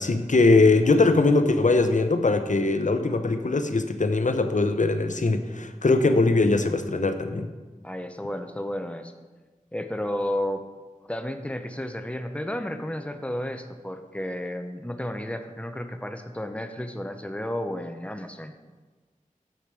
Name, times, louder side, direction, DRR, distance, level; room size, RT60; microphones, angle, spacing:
voice 1, 0.0-7.5, left 3 dB, 65° left, 8 dB, 0.6 m, -21 dB
voice 2, 7.8-9.1 9.7-10.6 11.1-18.5, left 1 dB, 10° left, 7 dB, 0.7 m, -32 dB
6.7 x 6.5 x 4.8 m, 1.3 s
wide cardioid pair, 40°, 14 cm